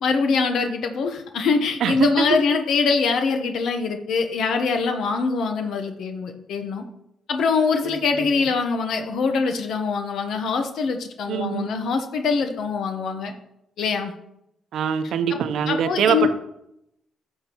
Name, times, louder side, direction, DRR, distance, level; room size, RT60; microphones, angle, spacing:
voice 1, 0.0-6.8 7.3-13.3 13.8-14.1 15.3-15.4 15.7-16.3, left 5 dB, 70° left, 5 dB, 0.9 m, -23 dB
voice 2, 1.8-2.4 11.3-11.7 14.7-16.3, right 7 dB, 70° right, 9 dB, 0.8 m, -23 dB
11.5 x 6.5 x 3.0 m, 0.80 s
cardioid pair, 90°, 0 cm